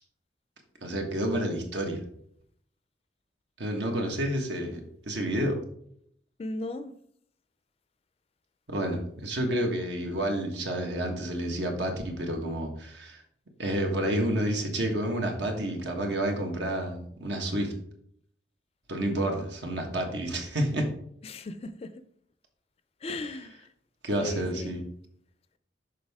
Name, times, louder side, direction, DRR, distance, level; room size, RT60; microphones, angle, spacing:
voice 1, 0.8-2.0 3.6-5.6 8.7-13.2 13.6-17.7 18.9-20.9 24.0-24.8, right 1 dB, 75° right, 3 dB, 1.4 m, -29 dB
voice 2, 6.4-6.9 21.2-21.9 23.0-23.7 24.2-24.7, left 2 dB, 35° left, 12 dB, 0.4 m, -36 dB
6.4 x 5.3 x 3.5 m, 0.67 s
head